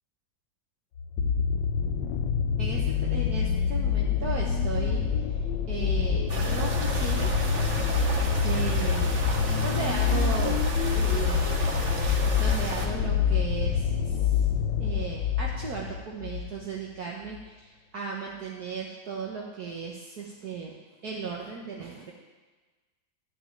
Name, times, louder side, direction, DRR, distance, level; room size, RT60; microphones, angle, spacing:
sound 1, 1.0-16.6 17.4-17.5, left 7 dB, 75° left, 1.3 m, -26 dB
voice 1, 2.6-5.4 5.7-7.3 8.4-9.1 9.6-10.6 10.9-11.7 12.4-14.5 14.8-20.8 21.0-22.1, right 5 dB, 55° right, -2 dB, 1.6 m, -36 dB
sound 2, 6.3-12.9, right 2 dB, 40° right, 1.5 m, -32 dB
12.5 x 5.3 x 9.1 m, 1.3 s
omnidirectional pair, 2.1 m